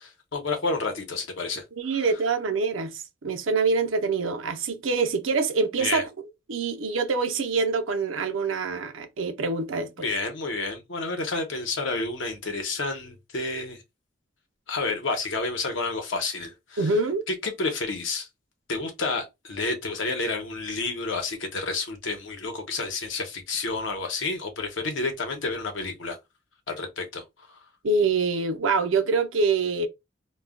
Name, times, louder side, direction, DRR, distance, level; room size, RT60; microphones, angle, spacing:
voice 1, 0.0-1.6 1.9-2.0 5.8-6.1 10.0-13.8 14.7-17.0 17.3-18.3 18.7-26.2 26.7-27.2 27.5-27.6, left 3 dB, 75° left, 0.8 m, -30 dB
voice 2, 1.8-6.1 6.5-10.1 16.8-17.2 27.8-29.9, right 4 dB, 85° right, 0.6 m, -25 dB
2.3 x 2.1 x 3.5 m
head